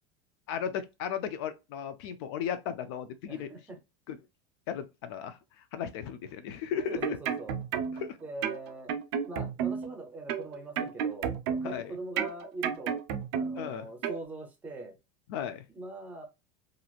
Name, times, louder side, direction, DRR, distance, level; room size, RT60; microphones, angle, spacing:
voice 1, 0.5-3.5 4.1-4.2 4.7-5.4 5.7-7.2 7.9-8.2 11.6-11.9 13.6-13.9 15.3-15.6, left 8 dB, 55° left, 0.4 m, -35 dB
voice 2, 3.3-3.8 6.9-7.5 8.2-8.9 9.2-13.0 13.3-15.0 15.7-16.3, right 2 dB, 10° right, 0.7 m, -42 dB
sound 1, 6.8-8.1 8.4-9.9 10.3-11.8 12.2-13.7 14.0-14.2, right 7 dB, 55° right, 0.5 m, -32 dB
3.0 x 2.5 x 2.4 m
supercardioid pair, 175°, 16 cm